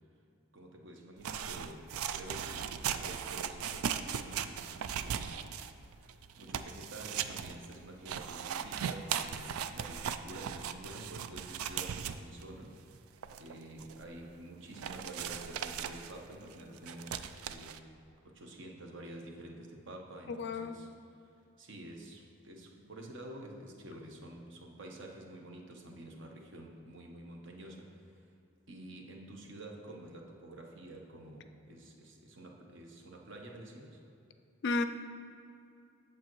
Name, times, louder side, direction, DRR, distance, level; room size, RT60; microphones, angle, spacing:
voice 1, 0.5-5.3 5.9-13.0 13.3-20.9 21.6-28.1 28.7-34.0, right 1 dB, 55° right, 1 dB, 0.9 m, -49 dB
sound 1, 1.2-12.4 12.9-13.0 13.2-14.0 14.3-14.4 14.8-17.8, right 8 dB, 85° right, 0.3 m, -38 dB
voice 2, 20.3-20.8 34.6-34.8, left 3 dB, 50° left, 9 dB, 0.4 m, -32 dB
8.3 x 7.4 x 3.1 m, 2.6 s
head